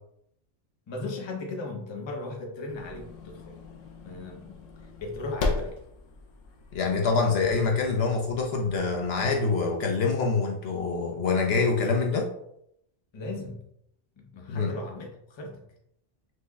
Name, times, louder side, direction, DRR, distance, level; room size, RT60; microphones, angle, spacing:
voice 1, 0.9-3.5 4.0-4.6 5.0-5.8 13.1-13.6 14.2-15.6, left 2 dB, 30° left, 1 dB, 0.6 m, -37 dB
sound 1, 2.7-9.4, left 3 dB, 85° left, 1.1 m, -37 dB
voice 2, 6.7-12.3 14.5-14.7, left 4 dB, 60° left, 1 dB, 0.8 m, -25 dB
6.0 x 2.1 x 3.4 m, 0.75 s
omnidirectional pair, 1.3 m